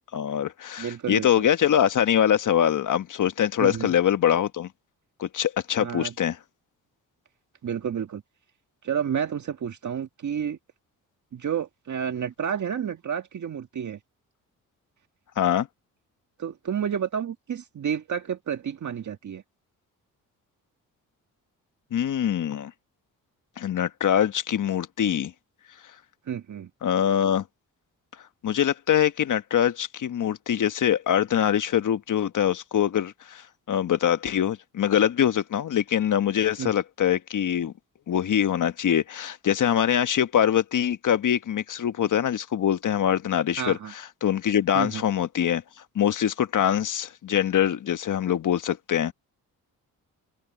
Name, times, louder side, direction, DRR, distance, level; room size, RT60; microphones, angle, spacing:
voice 1, 0.1-4.7 5.2-6.4 15.4-15.7 21.9-22.7 23.6-25.3 26.8-27.4 28.4-37.7 38.1-43.8 44.2-45.6 45.9-49.1, left 9 dB, 60° left, 1.3 m, -23 dB
voice 2, 0.8-1.5 3.6-4.0 5.8-6.1 7.6-8.2 8.8-10.6 11.3-14.0 16.4-19.4 26.3-26.7 36.6-36.7 43.6-43.9 44.7-45.0, right 8 dB, 55° right, 1.8 m, -30 dB
open air
cardioid pair, 70°, 35 cm